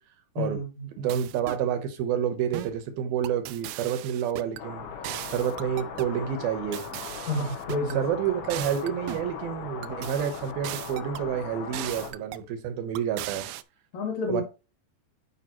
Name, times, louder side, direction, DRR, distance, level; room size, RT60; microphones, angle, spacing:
voice 1, 0.4-0.9 7.3-8.0 13.9-14.4, left 2 dB, 50° left, 2 dB, 2.7 m, -29 dB
voice 2, 1.0-4.9 5.3-6.8 7.9-13.5 14.3-14.4, right 9 dB, 70° right, 8 dB, 2.5 m, -29 dB
sound 1, 1.1-1.7 2.5-2.8 3.2-4.6 5.0-6.2 6.7-8.0 8.5-9.3 9.8-11.3 11.7-12.5 13.0-13.6, right 16 dB, 90° right, 2.8 m, -38 dB
sound 2, 4.6-12.1, left 6 dB, 70° left, 2.9 m, -39 dB
11.0 x 5.2 x 3.0 m, 0.30 s
omnidirectional pair, 4.9 m